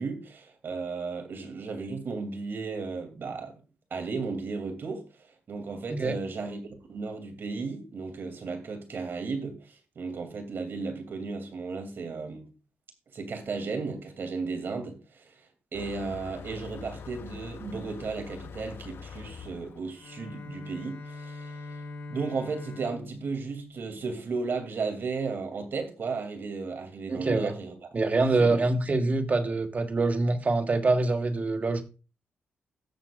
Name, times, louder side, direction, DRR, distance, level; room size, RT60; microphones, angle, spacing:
voice 1, 0.0-3.6 3.9-5.0 5.5-12.5 13.1-15.3 15.7-21.6 22.1-27.7 28.2-28.6, right 4 dB, 60° right, 2.6 m, -34 dB
Motor vehicle (road), 15.7-20.9, left 7 dB, 70° left, 0.8 m, -44 dB
Bowed string instrument, 19.9-24.8, left 2 dB, 90° left, 3.1 m, -43 dB
voice 2, 27.1-27.5 27.9-31.8, right 3 dB, 40° right, 1.5 m, -25 dB
17.0 x 6.9 x 2.4 m
cardioid pair, 80°, 4 cm